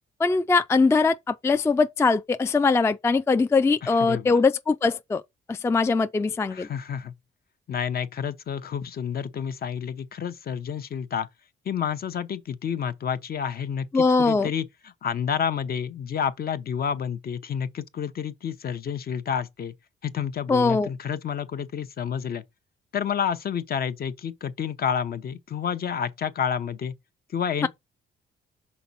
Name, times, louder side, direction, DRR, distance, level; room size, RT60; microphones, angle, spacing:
voice 1, 0.2-5.2 5.5-6.7 13.9-14.5 20.5-20.9 27.6-27.7, left 4 dB, 15° left, 0.3 m, -21 dB
voice 2, 3.8-4.4 6.5-7.1 7.7-11.3 11.7-19.7 20.0-22.4 22.9-26.9 27.3-27.7, left 7 dB, 50° left, 0.8 m, -29 dB
5.8 x 4.1 x 4.1 m
cardioid pair, 90°, 20 cm